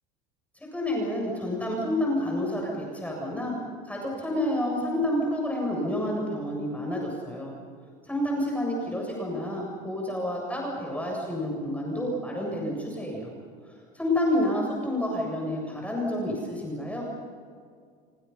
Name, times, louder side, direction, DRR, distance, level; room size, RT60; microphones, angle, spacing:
voice 1, 0.6-3.5 3.8-7.5 8.0-13.3 13.9-17.1, left 1 dB, 5° left, -1 dB, 7.5 m, -29 dB
29.5 x 24.5 x 5.7 m, 2.1 s
supercardioid pair, 90°, 21 cm